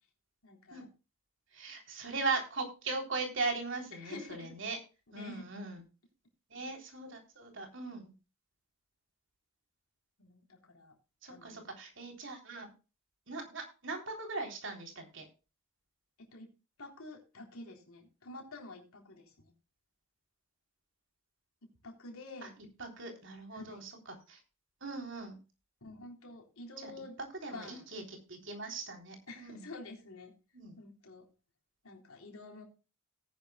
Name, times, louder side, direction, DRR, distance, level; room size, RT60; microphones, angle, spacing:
voice 1, 0.4-0.9 4.0-4.6 5.1-5.5 10.2-10.9 11.3-11.7 16.2-16.5 16.8-19.5 21.8-22.5 23.5-23.8 25.8-27.2 27.5-27.9 29.3-30.3 30.8-31.3 31.8-32.6, left 2 dB, 80° left, 2 dB, 3.6 m, -49 dB
voice 2, 1.5-4.8 5.1-5.8 6.5-8.1 11.2-12.7 13.3-15.3 22.4-22.5 22.8-24.4 24.8-25.4 26.8-26.9 27.4-29.6 30.5-30.8, right 3 dB, 55° right, 3 dB, 3.5 m, -39 dB
18.0 x 10.5 x 2.3 m, 0.32 s
head